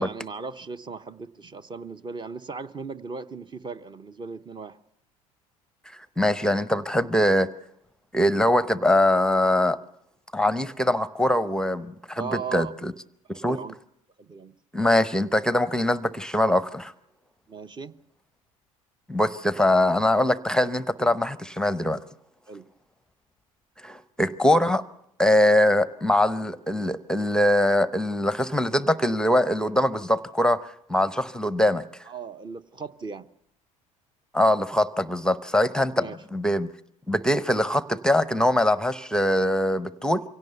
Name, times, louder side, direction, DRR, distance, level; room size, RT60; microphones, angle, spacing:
voice 1, 0.0-4.8 12.2-12.7 13.4-13.7 14.2-14.6 17.5-17.9 22.5-22.7 32.1-33.3 36.0-36.2, right 5 dB, 25° right, 13 dB, 0.9 m, -37 dB
voice 2, 5.9-7.5 8.1-9.8 10.3-12.9 13.4-13.6 14.7-16.9 19.1-22.0 23.8-24.8 25.2-31.8 34.3-36.7 37.1-40.2, left 1 dB, 5° left, 15 dB, 0.8 m, -22 dB
24.5 x 17.0 x 6.8 m, 0.78 s
hypercardioid pair, 70°, 18 cm